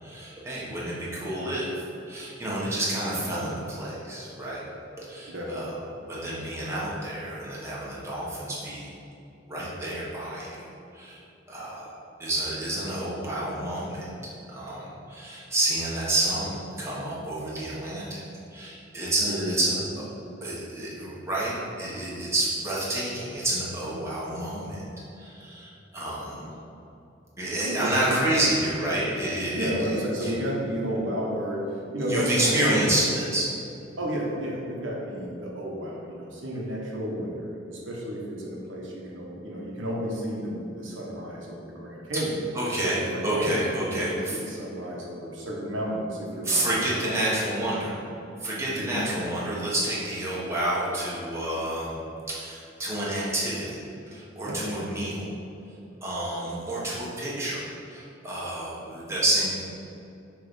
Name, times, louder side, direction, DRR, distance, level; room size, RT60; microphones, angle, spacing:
voice 1, 0.0-1.7 2.1-4.6 5.0-5.8 6.1-8.9 9.5-10.6 10.9-11.2 11.5-11.9 12.2-14.1 14.5-18.2 18.5-19.8 20.4-24.8 25.2-26.5 27.4-29.7 30.2-30.3 32.1-33.5 42.5-44.4 46.4-47.9 48.4-51.9 52.3-53.8 54.1-55.2 56.0-57.6 57.9-59.6, right 1 dB, 15° right, -7 dB, 1.4 m, -29 dB
voice 2, 3.0-3.3 5.3-5.8 19.3-19.6 26.3-26.6 27.6-28.3 29.5-33.0 34.0-42.4 42.8-43.6 43.9-47.2 48.8-49.0 54.4-54.7, equal, 85° right, -3 dB, 1.2 m, -32 dB
6.6 x 3.4 x 5.4 m, 2.9 s
head